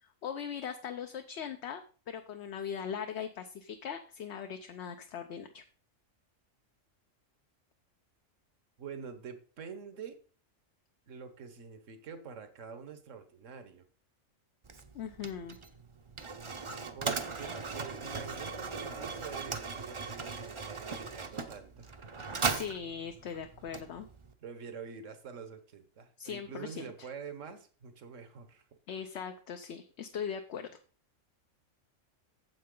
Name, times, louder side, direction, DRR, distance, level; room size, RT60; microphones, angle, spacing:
voice 1, 0.0-1.8 2.1-5.6 14.9-15.6 22.2-24.1 26.2-27.1 28.9-30.7, left 7 dB, 65° left, 6 dB, 0.9 m, -40 dB
voice 2, 8.8-10.2 11.1-13.9 16.9-22.1 24.4-28.7, right 6 dB, 75° right, 9 dB, 1.5 m, -46 dB
Mechanisms, 14.6-24.3, right 4 dB, 30° right, 0.6 m, -38 dB
9.4 x 7.5 x 3.8 m, 0.39 s
omnidirectional pair, 1.3 m